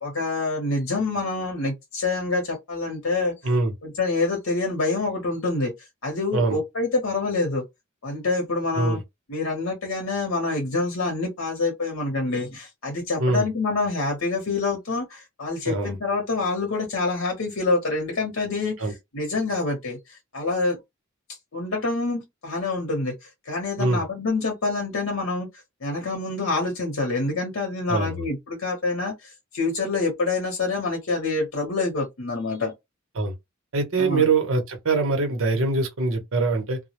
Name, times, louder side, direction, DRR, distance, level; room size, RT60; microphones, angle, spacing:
voice 1, 0.0-3.3 3.8-5.7 6.0-7.6 8.0-9.0 9.3-20.8 21.5-25.5 25.8-32.7 34.0-34.2, left 3 dB, 75° left, 0.8 m, -26 dB
voice 2, 27.9-28.3 33.2-33.3 33.7-36.8, right 3 dB, 75° right, 0.9 m, -23 dB
2.2 x 2.1 x 2.9 m
head